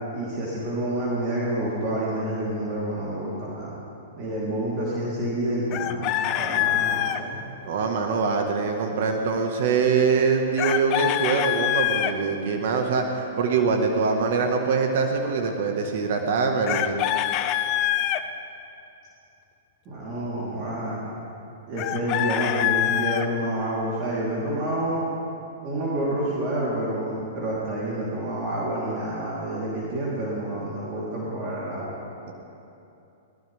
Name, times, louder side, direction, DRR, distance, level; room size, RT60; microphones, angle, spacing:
voice 1, 0.1-3.8 4.2-7.4 17.1-17.2 19.9-21.1 21.7-25.0 25.6-32.0, right 1 dB, 35° right, -8 dB, 3.8 m, -28 dB
Chicken rooster, 5.7-7.2 10.6-12.1 16.7-18.2 21.8-23.3, left 12 dB, 40° left, 0.7 m, -25 dB
voice 2, 7.6-17.0, right 5 dB, 60° right, 3 dB, 1.7 m, -23 dB
21.0 x 18.5 x 3.6 m, 2.8 s
hypercardioid pair, 130°, 0 cm